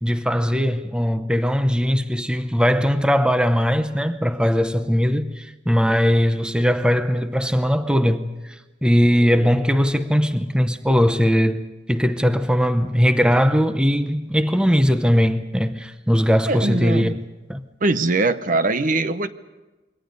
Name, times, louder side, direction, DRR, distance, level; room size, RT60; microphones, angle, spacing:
voice 1, 0.0-8.3 8.8-17.6, equal, 5° right, 0.7 m, -20 dB
voice 2, 16.5-17.2 17.8-19.3, right 2 dB, 45° right, 0.9 m, -21 dB
27.5 x 23.0 x 5.4 m
head